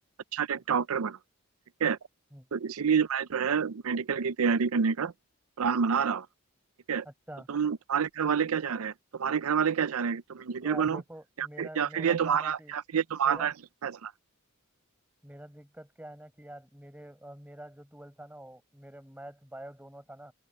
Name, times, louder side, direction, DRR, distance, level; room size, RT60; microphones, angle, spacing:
voice 1, 0.3-1.2 1.8-2.0 2.5-5.1 5.6-6.3 6.9-7.1 7.5-11.0 11.4-13.5 13.8-14.1, right 6 dB, 80° right, 0.5 m, -28 dB
voice 2, 7.0-7.5 10.6-12.7 13.2-13.5 15.2-20.3, right 1 dB, 10° right, 5.3 m, -46 dB
open air
head